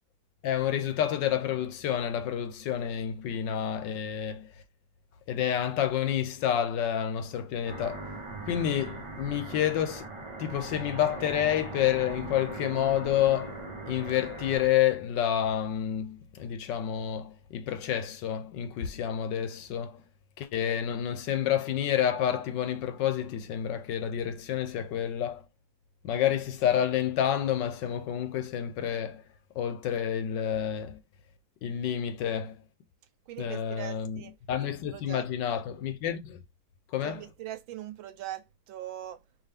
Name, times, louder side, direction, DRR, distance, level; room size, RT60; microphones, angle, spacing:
voice 1, 0.4-4.5 5.3-8.1 8.5-10.1 10.4-20.0 20.4-25.4 26.0-29.2 29.5-31.0 31.6-32.6 33.4-34.2 34.5-36.4 36.9-37.2, left 10 dB, 70° left, 1.3 m, -29 dB
sound 1, 7.7-14.7, right 2 dB, 45° right, 0.3 m, -40 dB
voice 2, 33.3-35.6 37.0-39.2, right 12 dB, 80° right, 1.5 m, -42 dB
4.8 x 3.0 x 3.4 m
omnidirectional pair, 2.1 m